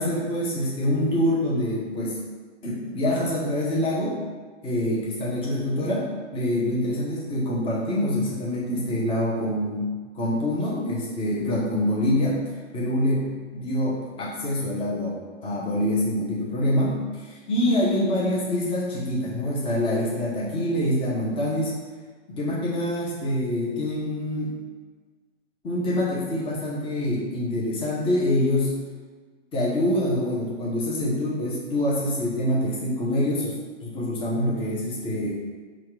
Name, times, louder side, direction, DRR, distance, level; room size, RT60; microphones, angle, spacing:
voice 1, 0.0-2.2 2.6-4.2 4.6-12.4 12.7-21.7 22.3-24.6 25.6-28.8 29.5-35.3, left 1 dB, 15° left, -6 dB, 0.9 m, -25 dB
4.3 x 2.4 x 4.7 m, 1.4 s
hypercardioid pair, 125°, 37 cm